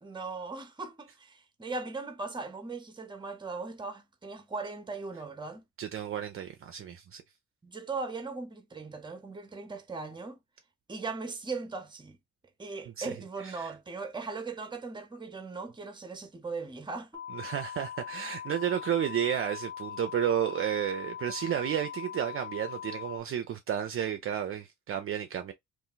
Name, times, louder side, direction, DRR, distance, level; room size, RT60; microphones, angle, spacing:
voice 1, 0.0-5.6 7.6-10.4 10.9-12.2 12.6-17.2, right 4 dB, 15° right, 0.7 m, -39 dB
voice 2, 5.8-7.2 13.0-13.1 13.4-13.7 17.3-25.5, right 9 dB, 45° right, 0.4 m, -32 dB
sound 1, 17.1-23.2, left 9 dB, 25° left, 0.4 m, -41 dB
2.5 x 2.1 x 3.8 m
cardioid pair, 90°, 30 cm